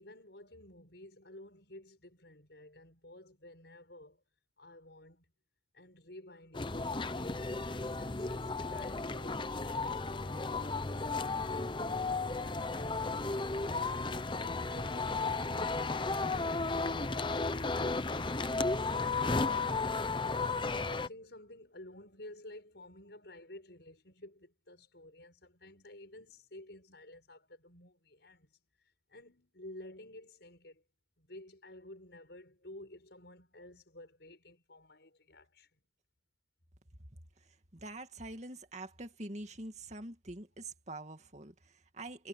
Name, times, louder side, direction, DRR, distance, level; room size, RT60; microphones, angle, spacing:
voice 1, 0.0-4.2 4.6-5.3 5.7-7.4 7.8-19.9 20.2-30.8 31.2-35.7, left 1 dB, 65° left, 6.6 m, -53 dB
sound 1, 6.5-21.1, left 3 dB, 25° left, 0.8 m, -34 dB
voice 2, 37.7-42.3, right 2 dB, 40° right, 2.3 m, -45 dB
head